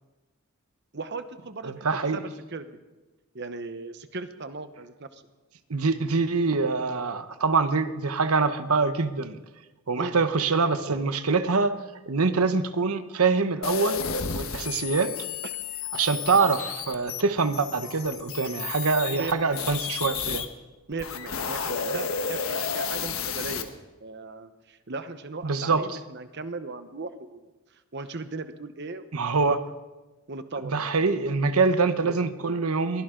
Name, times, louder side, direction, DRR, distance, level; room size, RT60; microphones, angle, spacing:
voice 1, 0.9-2.7 3.3-5.2 9.9-10.2 19.2-19.6 20.9-27.5 27.7-29.1 30.3-30.9, right 3 dB, 50° right, 10 dB, 1.0 m, -37 dB
voice 2, 1.6-2.2 5.7-9.4 9.9-11.7 12.1-14.0 14.3-15.1 15.9-20.5 25.4-25.9 29.1-29.6 30.7-33.0, right 4 dB, 85° right, 11 dB, 1.0 m, -24 dB
sound 1, 13.6-20.5 20.9-23.6, left 6 dB, 70° left, 1.3 m, -32 dB
22.5 x 16.5 x 3.8 m, 1.2 s
head